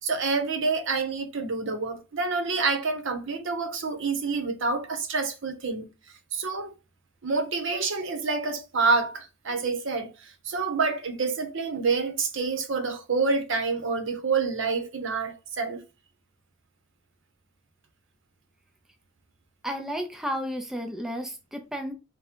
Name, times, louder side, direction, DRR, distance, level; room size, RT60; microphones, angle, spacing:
voice 1, 0.0-5.9 6.3-6.7 7.2-15.8, right 4 dB, 60° right, 0.8 m, -27 dB
voice 2, 19.6-21.9, equal, ahead, 0.5 m, -32 dB
3.6 x 2.2 x 4.3 m
head